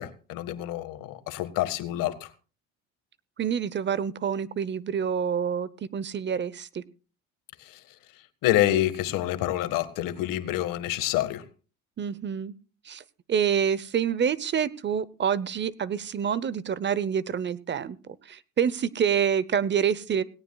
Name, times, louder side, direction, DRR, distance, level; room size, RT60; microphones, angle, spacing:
voice 1, 0.0-2.3 7.6-7.8 8.4-11.4, left 14 dB, 75° left, 1.7 m, -27 dB
voice 2, 3.4-6.8 12.0-12.5 12.9-13.0 13.3-18.0 18.3-20.2, right 8 dB, 35° right, 0.8 m, -27 dB
18.0 x 17.0 x 2.3 m
cardioid pair, 120°, 33 cm